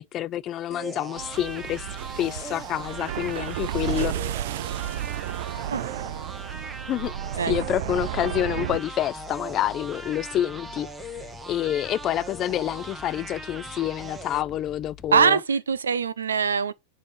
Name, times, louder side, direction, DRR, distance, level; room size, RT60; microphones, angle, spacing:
voice 1, 0.0-1.9 2.2-4.1 6.9-7.1 7.5-15.4, left 12 dB, 35° left, 0.3 m, -28 dB
sound 1, 0.7-14.4, right 3 dB, 10° right, 0.9 m, -40 dB
sound 2, 1.2-8.8, right 12 dB, 65° right, 0.3 m, -32 dB
sound 3, 7.5-15.3, left 8 dB, 15° left, 0.8 m, -47 dB
voice 2, 15.1-16.7, right 6 dB, 90° right, 0.7 m, -22 dB
7.1 x 2.9 x 4.9 m
hypercardioid pair, 115°, 0 cm